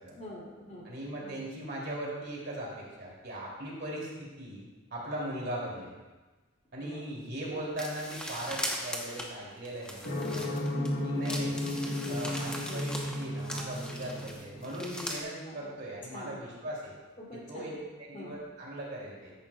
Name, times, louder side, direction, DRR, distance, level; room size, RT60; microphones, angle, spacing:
voice 1, 0.2-1.4 6.8-7.1 7.5-7.6 10.8-11.2 11.8-12.2 12.7-12.9 15.4-15.8 16.1-16.4 17.2-17.8 18.1-18.4, equal, 35° left, -5 dB, 2.8 m, -46 dB
voice 2, 0.8-4.6 4.9-5.9 6.7-10.6 11.0-11.6 12.1-16.9 17.5-19.3, right 1 dB, 50° right, -4 dB, 2.9 m, -39 dB
sound 1, 7.8-10.9 11.2-15.2, equal, 5° left, 1.0 m, -39 dB
sound 2, 10.0-15.1, left 1 dB, 70° left, 1.4 m, -34 dB
14.0 x 10.5 x 2.4 m, 1.2 s
head